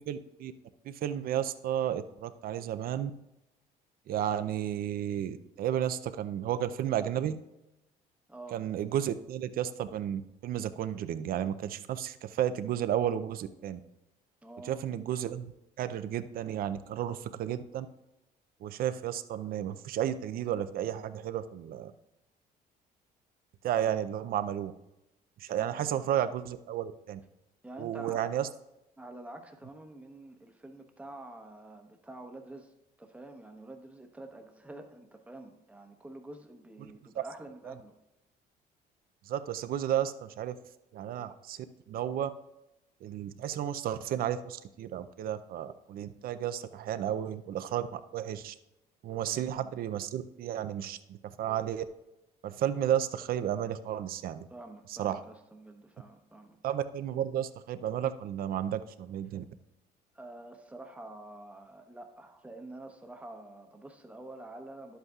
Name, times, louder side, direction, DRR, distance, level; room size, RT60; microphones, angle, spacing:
voice 1, 0.1-0.5 0.8-3.1 4.1-7.4 8.5-13.8 14.6-15.5 15.8-17.9 18.6-21.9 23.6-24.7 25.4-27.2 27.8-28.5 36.8-37.3 37.6-37.7 39.3-40.6 40.9-42.3 43.0-48.5 49.0-51.8 52.4-54.5 55.0-55.2 56.6-59.4, right 10 dB, 60° right, 12 dB, 0.5 m, -33 dB
voice 2, 14.4-14.8 25.6-26.0 27.6-28.4 29.0-32.7 33.0-37.9 49.3-49.8 54.5-56.6 60.1-65.0, right 2 dB, 10° right, 4 dB, 1.0 m, -48 dB
11.0 x 7.9 x 2.4 m, 0.91 s
cardioid pair, 110°, 17 cm